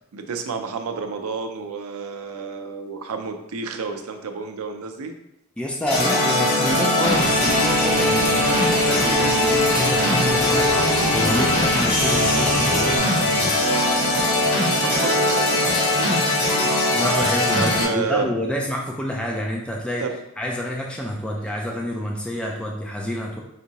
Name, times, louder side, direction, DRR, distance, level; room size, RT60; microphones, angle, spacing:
voice 1, 0.1-5.1 14.7-17.2 17.6-18.3 20.0-20.1, right 5 dB, 75° right, 6 dB, 0.5 m, -30 dB
voice 2, 5.6-13.6 16.9-20.0 20.4-23.4, left 1 dB, 5° left, -2 dB, 0.4 m, -28 dB
sound 1, 5.9-17.9, left 1 dB, 85° left, 1.4 m, -20 dB
sound 2, 7.0-13.0, left 1 dB, 40° left, 0.8 m, -26 dB
4.9 x 2.7 x 2.8 m, 0.82 s
head